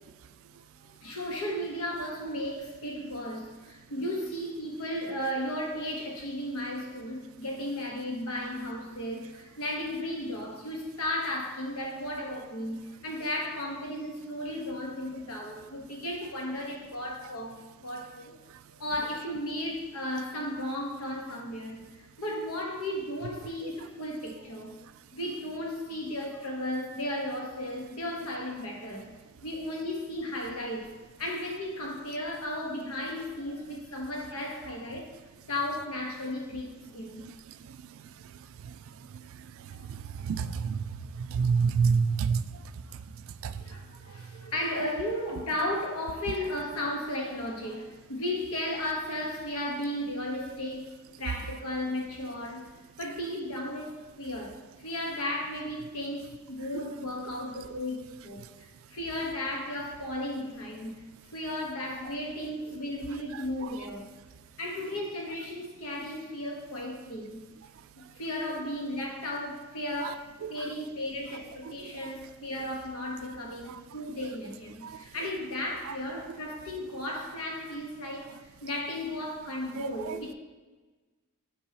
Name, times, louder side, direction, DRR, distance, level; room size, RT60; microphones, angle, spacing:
voice 1, 0.8-18.3 18.8-24.7 25.1-29.1 29.4-35.1 35.5-37.3 39.7-39.8 43.5-52.7 53.0-61.0 61.3-64.1 64.6-67.4 68.1-80.3, left 1 dB, 90° left, 0 dB, 1.3 m, -35 dB
voice 2, 37.2-43.8 44.4-44.5 56.7-56.8 57.3-57.4 57.7-57.8 63.3-63.9 68.0-68.1 70.0-70.1 70.4-70.7 71.8-72.1 73.7-73.8 74.8-75.0 75.9-76.2 79.6-80.2, right 5 dB, 65° right, 13 dB, 0.3 m, -32 dB
8.1 x 4.7 x 2.9 m, 1.3 s
head